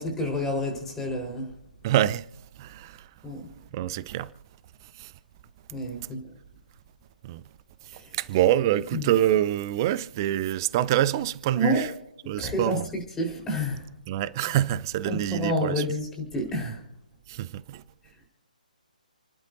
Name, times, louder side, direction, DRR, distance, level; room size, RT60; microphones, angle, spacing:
voice 1, 0.0-1.5 3.2-3.5 5.7-6.3 7.9-8.1 8.9-9.1 11.5-11.9 12.4-13.9 15.0-16.8, equal, 10° left, 4.4 m, -29 dB
voice 2, 1.8-2.2 2.6-3.0 3.7-4.3 5.0-5.1 7.2-7.4 8.2-11.9 12.3-12.9 14.1-15.8 17.3-17.8, right 12 dB, 25° right, 0.6 m, -25 dB
30.0 x 11.5 x 2.7 m
figure-of-eight pair, 140°, 5 cm